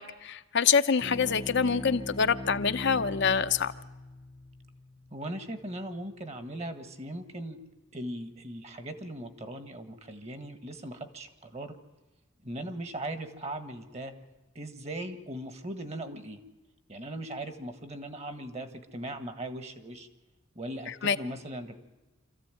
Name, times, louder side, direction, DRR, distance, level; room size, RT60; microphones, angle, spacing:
voice 1, 0.0-3.7 21.0-21.2, left 6 dB, 60° left, 9 dB, 0.7 m, -26 dB
sound 1, 1.0-5.9, left 2 dB, 20° left, 0.8 m, -42 dB
voice 2, 5.1-7.6 7.9-11.8 12.4-14.1 14.6-16.4 16.9-20.1 20.6-21.8, right 1 dB, 30° right, 9 dB, 1.7 m, -39 dB
26.0 x 14.5 x 9.2 m, 1.1 s
head